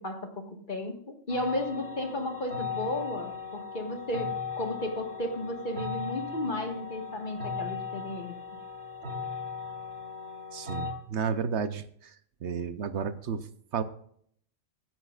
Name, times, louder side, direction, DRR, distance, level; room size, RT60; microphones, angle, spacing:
voice 1, 0.0-8.4, left 1 dB, 40° left, 4 dB, 1.7 m, -34 dB
sound 1, 1.3-10.9, left 5 dB, 85° right, 4.0 m, -37 dB
voice 2, 10.5-12.1 12.4-13.5 13.7-13.8, right 6 dB, 70° right, 12 dB, 1.0 m, -32 dB
24.0 x 10.5 x 2.4 m, 0.65 s
omnidirectional pair, 1.2 m